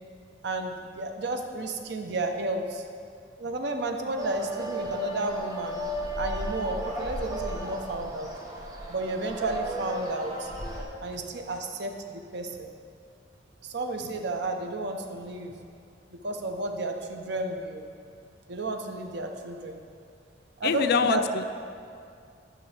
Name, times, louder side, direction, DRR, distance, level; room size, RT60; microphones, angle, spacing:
voice 1, 0.4-2.8 3.4-5.9 6.1-8.3 8.9-10.5 11.0-12.7 13.6-15.5 16.1-17.9 18.5-19.8 20.6-21.2, right 2 dB, 65° right, 5 dB, 0.6 m, -32 dB
sound 1, 4.2-10.8, right 1 dB, 20° right, 0.9 m, -34 dB
voice 2, 20.6-21.4, left 6 dB, 60° left, 11 dB, 0.3 m, -25 dB
9.9 x 5.8 x 3.3 m, 2.3 s
head